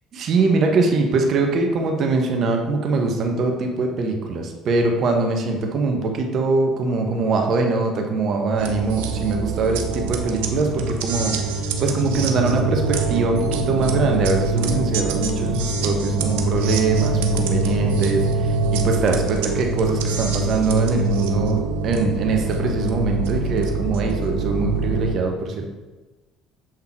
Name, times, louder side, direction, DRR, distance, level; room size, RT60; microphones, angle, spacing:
voice 1, 0.1-11.3 11.8-25.7, right 3 dB, 55° right, 2 dB, 1.1 m, -22 dB
sound 1, 8.6-25.1, right 3 dB, 80° right, 0.7 m, -24 dB
7.5 x 3.7 x 4.5 m, 1.2 s
hypercardioid pair, 65°, 0 cm